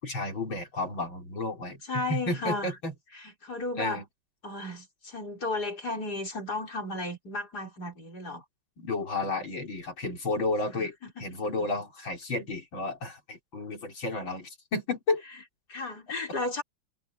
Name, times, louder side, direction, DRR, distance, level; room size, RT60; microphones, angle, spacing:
voice 1, 0.0-2.9 3.8-4.0 8.8-11.0 11.2-15.2, left 2 dB, 80° left, 5.2 m, -32 dB
voice 2, 1.9-2.7 3.1-4.0 4.4-8.4 9.3-9.5 10.7-11.3 11.6-11.7 15.7-16.6, left 2 dB, 55° left, 5.0 m, -34 dB
omnidirectional pair, 2.1 m